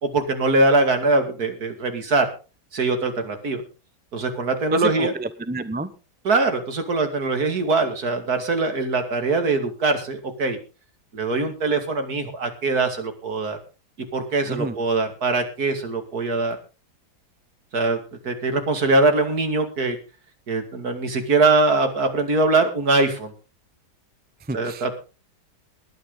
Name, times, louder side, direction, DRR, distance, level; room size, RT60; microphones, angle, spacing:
voice 1, 0.0-2.3 2.7-3.6 4.1-5.1 6.2-10.6 11.1-13.6 14.1-16.6 17.7-18.0 18.2-20.0 20.5-23.3 24.5-25.0, right 3 dB, 65° right, 6 dB, 2.7 m, -22 dB
voice 2, 4.7-5.9 14.5-14.8 24.5-25.0, right 2 dB, 10° right, 12 dB, 0.5 m, -29 dB
20.0 x 10.0 x 3.9 m, 0.32 s
omnidirectional pair, 1.8 m